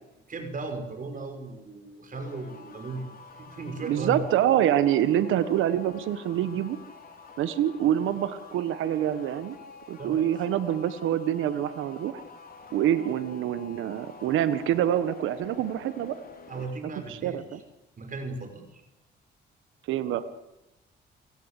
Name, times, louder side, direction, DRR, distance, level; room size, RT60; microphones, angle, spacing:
voice 1, 0.3-3.1 3.4-4.2 10.0-10.3 16.5-17.4 18.0-18.8, right 3 dB, 45° right, 6 dB, 5.6 m, -36 dB
sound 1, 2.1-16.8, left 4 dB, 50° left, 4.3 m, -48 dB
voice 2, 3.8-6.8 7.4-9.6 9.9-12.2 12.7-16.2 16.5-16.6 17.1-17.6 19.9-20.2, right 11 dB, 85° right, 12 dB, 1.4 m, -26 dB
29.0 x 17.5 x 8.4 m, 0.94 s
cardioid pair, 90°, 20 cm